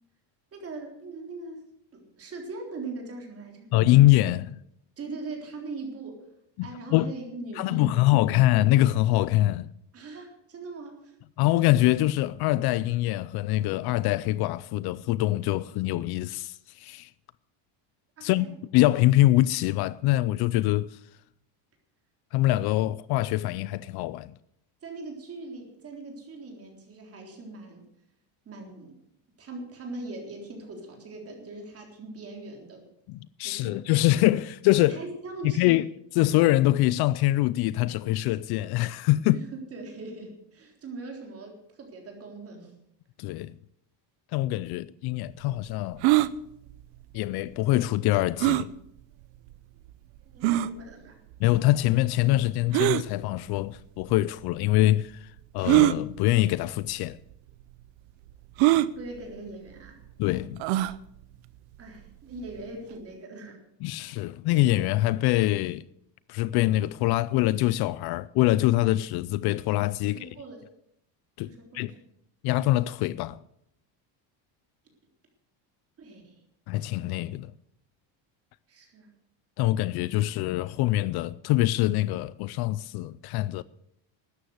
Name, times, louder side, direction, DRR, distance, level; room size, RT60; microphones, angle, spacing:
voice 1, 0.5-1.7 1.9-3.7 5.0-6.2 6.6-8.4 9.9-11.2 18.2-18.5 24.8-27.9 28.5-28.9 29.4-32.9 33.4-33.9 34.9-35.8 39.3-42.8 50.3-51.2 59.0-60.0 61.8-63.6 70.1-70.6 71.5-71.9 76.0-76.4 78.7-79.1, right 3 dB, 30° right, 3.7 m, -41 dB
voice 2, 3.7-4.6 6.6-7.1 7.6-9.7 11.4-17.1 18.2-21.0 22.3-24.3 33.1-35.0 35.4-35.9 36.2-39.4 43.2-43.5 44.3-46.0 47.1-48.7 51.4-57.2 60.2-60.6 63.8-65.8 66.3-70.3 71.4-71.9 72.4-73.4 76.7-77.5 79.6-83.6, left 16 dB, 55° left, 0.5 m, -24 dB
sound 1, 46.0-46.3 48.4-48.7 49.5-49.6 50.4-50.7 52.7-53.0 54.1-54.2 55.6-56.0 56.9-57.0 57.3-57.4 58.6-58.9 60.6-61.0, right 17 dB, 80° right, 0.8 m, -21 dB
13.0 x 9.7 x 7.9 m
cardioid pair, 165°, 45 cm